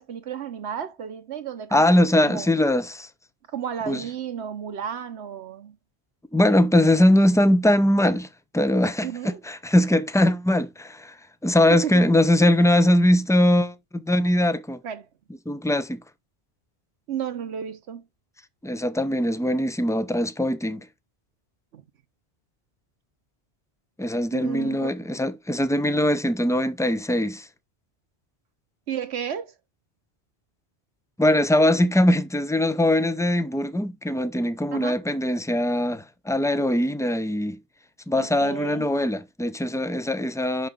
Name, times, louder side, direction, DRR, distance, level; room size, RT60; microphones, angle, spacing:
voice 1, 0.0-2.5 3.5-5.8 9.0-9.4 11.7-12.1 14.8-15.1 17.1-18.1 21.7-21.8 24.3-25.0 28.9-29.5 34.7-35.0 38.1-38.9, right 8 dB, 75° right, 1.1 m, -33 dB
voice 2, 1.7-3.1 3.9-4.0 6.3-8.3 8.5-11.2 11.4-14.8 15.5-16.0 18.6-20.9 24.0-27.5 31.2-37.6 38.1-40.7, left 1 dB, 5° left, 0.3 m, -21 dB
5.9 x 5.9 x 3.4 m
omnidirectional pair, 1.1 m